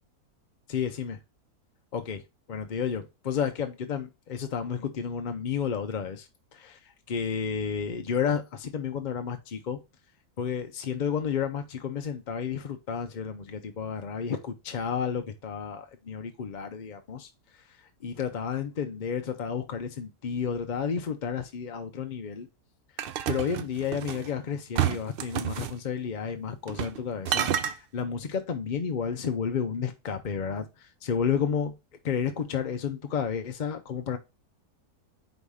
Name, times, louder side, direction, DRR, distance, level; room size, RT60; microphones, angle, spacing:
voice 1, 0.7-1.2 1.9-2.2 2.5-6.8 7.1-9.8 10.4-17.3 18.0-22.5 23.3-31.7 32.0-34.2, left 7 dB, 50° left, 0.5 m, -31 dB
sound 1, 23.0-24.3 24.8-25.8 26.7-27.0 27.3-27.8, right 10 dB, 85° right, 0.5 m, -29 dB
4.9 x 4.0 x 5.5 m
omnidirectional pair, 1.6 m